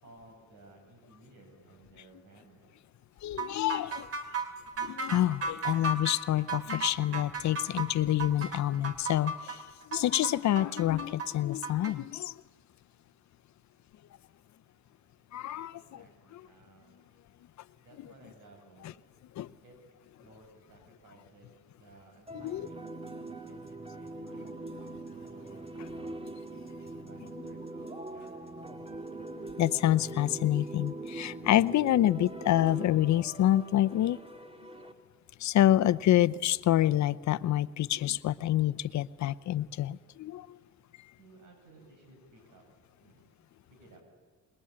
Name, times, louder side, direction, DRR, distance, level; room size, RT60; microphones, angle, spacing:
voice 1, 0.0-2.7 15.9-17.0 17.8-18.9 19.6-22.8 23.4-26.3 26.7-28.6 41.2-42.7 43.0-43.2 43.7-44.0, right 2 dB, 80° right, 3 dB, 7.8 m, -57 dB
voice 2, 3.2-4.1 4.8-9.6 9.9-12.3 15.3-16.0 16.3-16.4 19.4-19.5 22.3-22.7 29.6-34.2 35.4-40.5, left 13 dB, 65° left, 16 dB, 0.7 m, -27 dB
sound 1, 3.4-11.9, right 3 dB, 50° right, 2.7 m, -35 dB
sound 2, 22.3-34.9, right 2 dB, 20° right, 2.0 m, -42 dB
26.0 x 21.5 x 8.7 m, 1.5 s
cardioid pair, 90°, 30 cm